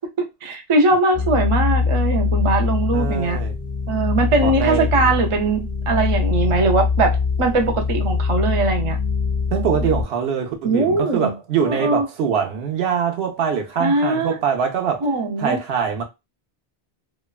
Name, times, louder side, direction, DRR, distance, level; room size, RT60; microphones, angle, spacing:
voice 1, 0.2-3.4 3.9-9.0 10.6-11.3 11.7-12.1 13.8-14.4 15.0-15.6, right 3 dB, 50° right, 0.4 m, -20 dB
sound 1, 1.1-10.0, left 5 dB, ahead, 0.7 m, -22 dB
voice 2, 2.9-3.6 4.4-5.1 9.5-15.1 15.4-16.0, right 7 dB, 75° right, 0.9 m, -23 dB
2.9 x 2.2 x 2.3 m
omnidirectional pair, 1.1 m